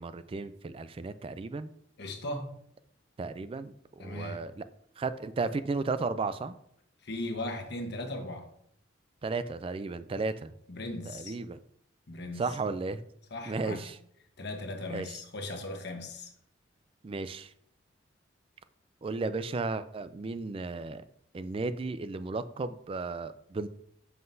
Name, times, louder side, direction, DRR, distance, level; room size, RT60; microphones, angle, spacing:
voice 1, 0.0-1.7 3.2-4.6 5.0-6.5 9.2-10.5 11.1-11.6 12.4-13.0 13.5-14.0 14.9-15.1 17.0-17.5 19.0-21.0 21.3-23.7, right 3 dB, 30° right, 0.3 m, -34 dB
voice 2, 2.0-2.5 4.0-4.5 7.0-8.5 10.7-11.4 12.1-12.6 13.3-13.9 14.4-16.3, left 1 dB, 60° left, 1.1 m, -38 dB
7.4 x 5.7 x 2.6 m
head